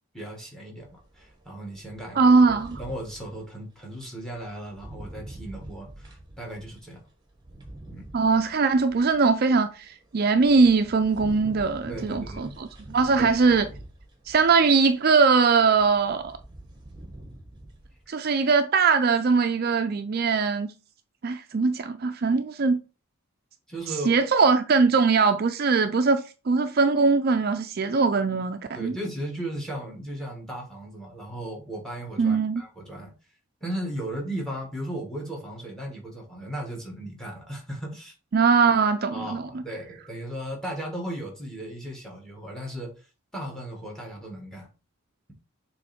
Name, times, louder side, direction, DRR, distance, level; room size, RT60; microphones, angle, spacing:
voice 1, 0.1-2.3 2.8-7.0 7.9-8.0 11.9-12.5 13.2-13.3 23.7-24.2 28.7-33.1 33.6-38.2 39.1-43.1 43.3-44.7, right 1 dB, 5° left, 1.8 m, -36 dB
sound 1, 0.8-3.5 3.8-18.1, right 1 dB, 20° right, 1.2 m, -45 dB
voice 2, 2.2-2.8 8.1-13.7 14.3-16.4 18.1-20.7 21.2-22.8 24.1-28.9 32.2-32.6 38.3-39.4, right 4 dB, 45° right, 0.4 m, -21 dB
7.0 x 3.1 x 4.3 m
head